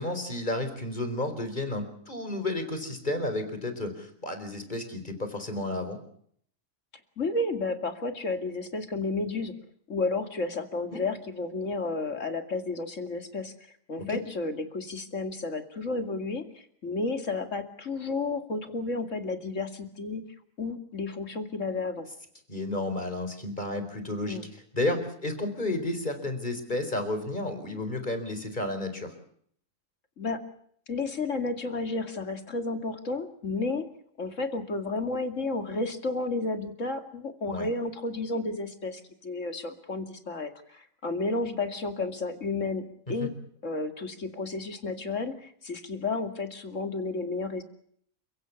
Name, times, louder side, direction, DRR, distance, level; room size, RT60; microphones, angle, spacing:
voice 1, 0.0-6.0 10.9-11.0 14.1-14.2 22.5-29.1 37.5-37.7 43.1-43.3, left 2 dB, 35° left, 8 dB, 4.5 m, -32 dB
voice 2, 7.2-9.5 9.9-13.5 13.9-20.2 20.6-22.1 24.2-24.4 30.2-30.4 30.9-33.9 34.2-43.3 43.6-47.6, left 3 dB, 65° left, 7 dB, 2.8 m, -32 dB
29.5 x 16.0 x 8.4 m, 0.65 s
omnidirectional pair, 1.4 m